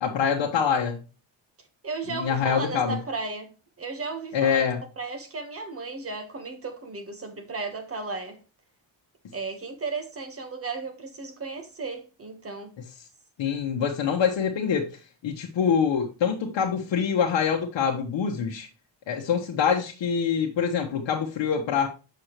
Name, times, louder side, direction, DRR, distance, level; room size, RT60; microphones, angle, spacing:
voice 1, 0.0-1.0 2.1-3.0 4.3-4.8 13.4-14.9 15.2-18.7 19.1-21.9, left 7 dB, 65° left, 1.1 m, -25 dB
voice 2, 1.8-4.7 5.0-8.4 9.3-12.7, right 3 dB, 30° right, 1.3 m, -35 dB
7.0 x 6.5 x 3.0 m
wide cardioid pair, 175°, 47 cm